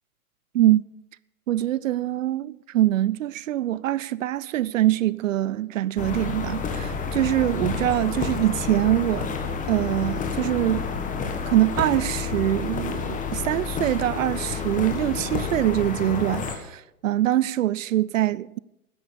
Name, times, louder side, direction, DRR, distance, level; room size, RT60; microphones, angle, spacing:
voice 1, 1.5-9.4 9.7-10.9 11.5-18.6, right 13 dB, 60° right, 0.5 m, -24 dB
sound 1, 6.0-16.6, left 5 dB, 15° left, 1.5 m, -29 dB
12.5 x 9.9 x 6.9 m
figure-of-eight pair, 110°, 46 cm